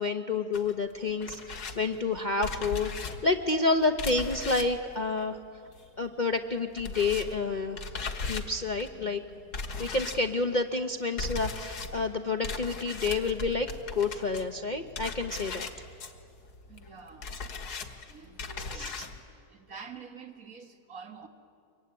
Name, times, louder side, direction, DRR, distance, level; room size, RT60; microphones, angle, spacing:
voice 1, 0.0-5.4 6.0-7.8 8.2-9.2 9.8-15.7 18.7-18.9, left 3 dB, 35° left, 4 dB, 0.8 m, -29 dB
sound 1, 0.5-6.1 6.3-19.2, left 4 dB, 75° left, 2.1 m, -39 dB
voice 2, 16.7-17.3 18.1-21.3, right 5 dB, 60° right, 4 dB, 2.1 m, -48 dB
24.0 x 23.5 x 9.7 m, 2.4 s
omnidirectional pair, 1.7 m